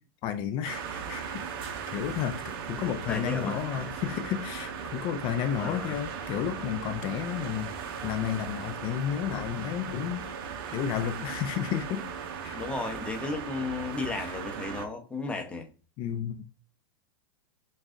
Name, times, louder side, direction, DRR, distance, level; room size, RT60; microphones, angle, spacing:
voice 1, 0.2-2.4 2.7-7.7 8.0-10.3 10.7-12.1 12.4-12.6 14.2-14.4 16.0-16.4, left 10 dB, 40° left, 0.4 m, -32 dB
sound 1, 0.6-14.9, right 7 dB, 60° right, 0.7 m, -38 dB
voice 2, 3.0-3.9 5.6-6.0 7.5-7.7 12.5-15.7, left 3 dB, 10° left, 0.7 m, -34 dB
6.0 x 2.4 x 2.5 m
hypercardioid pair, 120°, 13 cm